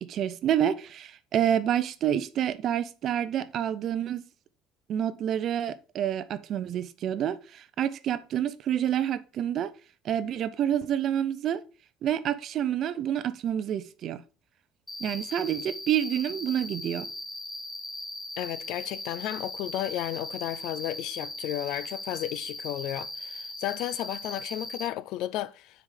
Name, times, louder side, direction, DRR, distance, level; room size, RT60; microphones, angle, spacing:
voice 1, 0.0-4.3 4.9-9.7 10.0-11.6 12.0-14.2 15.0-17.1, right 10 dB, 35° right, 0.5 m, -28 dB
Cricket, 14.9-24.9, left 1 dB, 10° left, 0.6 m, -39 dB
voice 2, 18.4-25.8, left 14 dB, 55° left, 0.3 m, -33 dB
5.5 x 4.8 x 5.1 m
cardioid pair, 180°, 0 cm